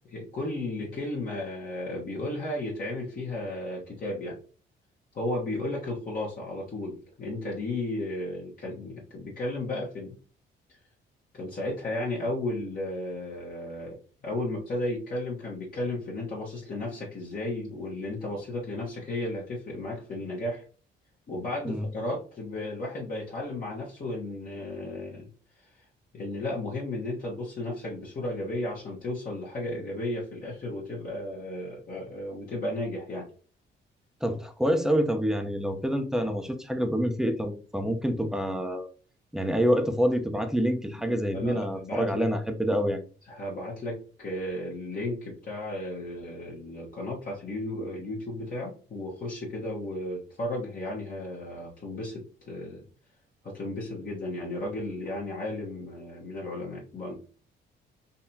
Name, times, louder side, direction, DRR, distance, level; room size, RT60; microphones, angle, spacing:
voice 1, 0.1-4.4 5.1-10.1 11.3-14.0 14.2-20.6 21.3-25.3 26.1-33.3 41.0-42.3 43.3-52.8 53.4-57.1, left 1 dB, 45° left, -5 dB, 1.3 m, -34 dB
voice 2, 34.2-38.9 39.3-43.0, equal, 5° right, 5 dB, 0.7 m, -27 dB
4.1 x 2.8 x 2.7 m, 0.38 s
cardioid pair, 90°, 20 cm